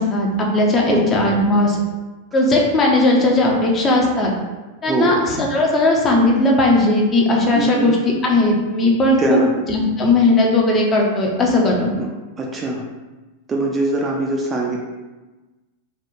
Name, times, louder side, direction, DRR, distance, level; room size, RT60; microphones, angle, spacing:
voice 1, 0.0-1.8 2.3-4.3 4.8-8.0 8.2-9.4 9.7-11.9, left 2 dB, 25° left, -1 dB, 0.6 m, -17 dB
voice 2, 4.8-5.1 7.5-8.0 9.2-9.5 12.0-12.1 12.4-12.8 13.5-14.8, right 2 dB, 20° right, -1 dB, 0.4 m, -22 dB
3.4 x 2.2 x 2.6 m, 1.2 s
figure-of-eight pair, 90°, 0 cm